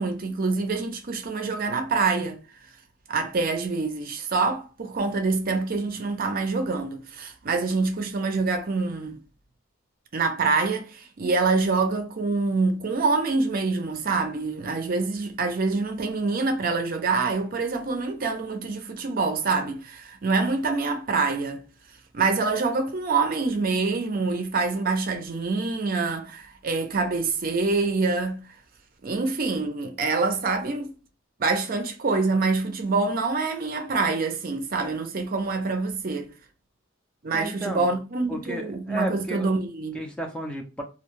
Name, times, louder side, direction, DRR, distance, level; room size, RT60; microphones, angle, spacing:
voice 1, 0.0-2.4 3.1-9.2 10.1-21.6 22.1-28.4 29.0-30.9 31.4-36.3 37.2-40.0, right 3 dB, 45° right, 0.5 m, -26 dB
voice 2, 37.3-37.9 38.3-39.6 39.9-40.8, right 1 dB, 5° left, 0.5 m, -33 dB
2.4 x 2.2 x 3.0 m
head